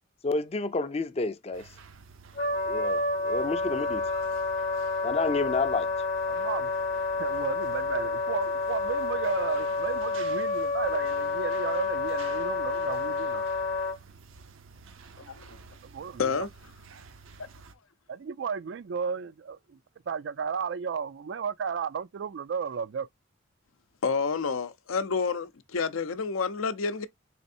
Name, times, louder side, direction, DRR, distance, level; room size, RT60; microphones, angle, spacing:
voice 1, 0.2-1.7 2.7-4.0 5.0-5.9, left 3 dB, 30° left, 0.4 m, -30 dB
sound 1, 1.5-17.7, right 4 dB, 80° right, 0.7 m, -50 dB
Wind instrument woodwind instrument, 2.4-14.0, left 3 dB, 50° left, 0.8 m, -29 dB
voice 2, 6.3-6.7 7.2-13.5 15.8-16.5 18.1-19.8 20.1-23.1, right 6 dB, 60° right, 0.3 m, -33 dB
voice 3, 24.0-27.1, left 5 dB, 85° left, 0.6 m, -29 dB
4.2 x 3.3 x 2.6 m
head